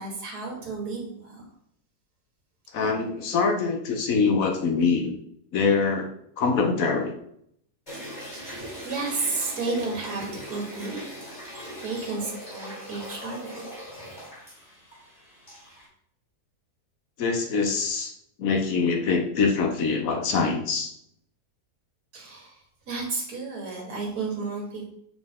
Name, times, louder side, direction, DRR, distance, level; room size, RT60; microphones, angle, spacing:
voice 1, 0.0-1.4 8.3-11.0 11.8-13.7 13.9-14.2 22.1-24.8, right 3 dB, 75° right, -1 dB, 2.1 m, -32 dB
voice 2, 2.7-5.2 5.5-6.1 6.4-7.1 17.2-18.1 18.4-20.9, left 4 dB, 65° left, 4 dB, 1.2 m, -24 dB
sound 1, 7.9-15.9, equal, 20° left, 2.6 m, -40 dB
6.5 x 4.3 x 3.6 m, 0.69 s
omnidirectional pair, 1.7 m